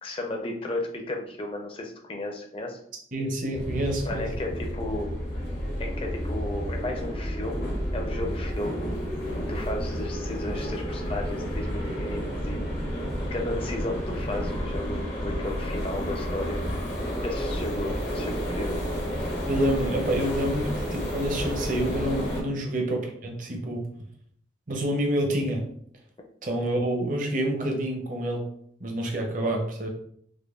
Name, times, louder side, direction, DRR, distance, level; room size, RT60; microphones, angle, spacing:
voice 1, 0.0-2.8 4.1-5.1 5.8-8.8 9.3-12.7 13.3-16.6 17.2-18.8, left 1 dB, 30° left, 2 dB, 0.5 m, -34 dB
voice 2, 3.1-4.3 19.5-23.8 24.7-25.6 26.4-28.4 28.8-29.9, right 1 dB, 45° right, 2 dB, 0.7 m, -28 dB
sound 1, 3.5-22.4, equal, 65° left, 0.9 m, -31 dB
4.9 x 2.2 x 2.4 m, 0.65 s
head